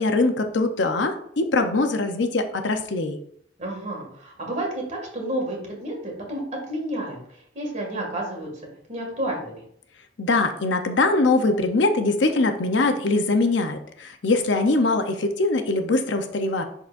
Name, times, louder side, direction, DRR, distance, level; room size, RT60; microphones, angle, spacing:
voice 1, 0.0-3.2 10.2-16.6, left 2 dB, 70° left, 6 dB, 0.7 m, -22 dB
voice 2, 3.6-7.2 7.5-8.5 8.9-9.6, right 1 dB, 40° right, 0 dB, 2.1 m, -30 dB
10.5 x 3.9 x 2.5 m, 0.67 s
head